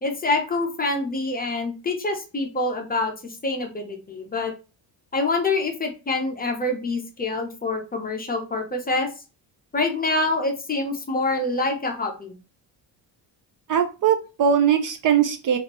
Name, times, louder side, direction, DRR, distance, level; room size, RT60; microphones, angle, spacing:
voice 1, 0.0-4.5 5.1-9.1 9.7-12.3, left 2 dB, 20° left, 3 dB, 0.6 m, -26 dB
voice 2, 13.7-15.6, right 8 dB, 45° right, 7 dB, 0.4 m, -20 dB
3.5 x 2.5 x 2.9 m, 0.31 s
cardioid pair, 140°, 44 cm